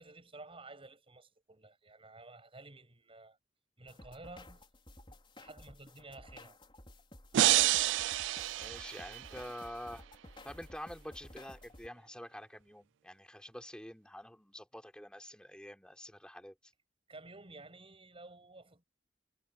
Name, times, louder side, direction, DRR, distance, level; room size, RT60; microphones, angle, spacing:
voice 1, 0.0-3.4 3.8-4.6 5.4-6.6 17.1-18.8, right 2 dB, 30° right, 7.2 m, -52 dB
sound 1, 3.9-11.9, left 1 dB, 30° left, 4.7 m, -54 dB
sound 2, 7.3-9.5, right 15 dB, 85° right, 0.3 m, -29 dB
voice 2, 8.6-10.0 10.4-16.7, equal, 5° left, 3.5 m, -47 dB
head